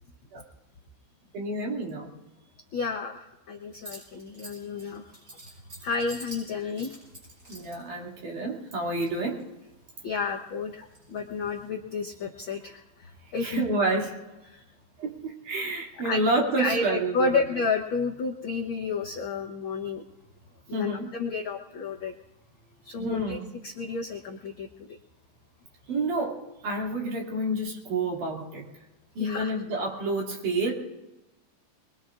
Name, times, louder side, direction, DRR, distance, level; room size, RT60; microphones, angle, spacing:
voice 1, 1.3-2.1 7.5-9.4 13.4-14.2 15.0-17.4 20.7-21.1 22.9-23.5 25.9-28.6 29.2-30.7, right 2 dB, 80° right, -1 dB, 4.1 m, -29 dB
voice 2, 2.7-5.2 5.8-7.0 10.0-13.7 14.5-14.6 16.0-20.0 20.7-22.1 22.8-25.0 29.2-29.5, left 4 dB, 90° left, 2 dB, 1.1 m, -31 dB
sound 1, 3.7-7.8 8.7-9.5 9.9-11.7, right 1 dB, 30° right, 8.7 m, -47 dB
23.5 x 22.0 x 2.5 m, 1.0 s
omnidirectional pair, 3.6 m